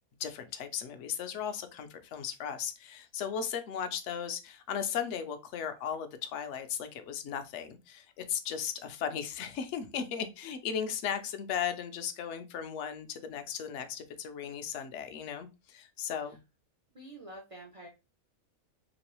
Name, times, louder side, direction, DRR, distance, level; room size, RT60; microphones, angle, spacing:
voice 1, 0.2-16.4, left 8 dB, 65° left, 0.8 m, -36 dB
voice 2, 16.9-17.9, right 1 dB, 55° right, 0.3 m, -48 dB
3.2 x 3.0 x 2.9 m
omnidirectional pair, 1.5 m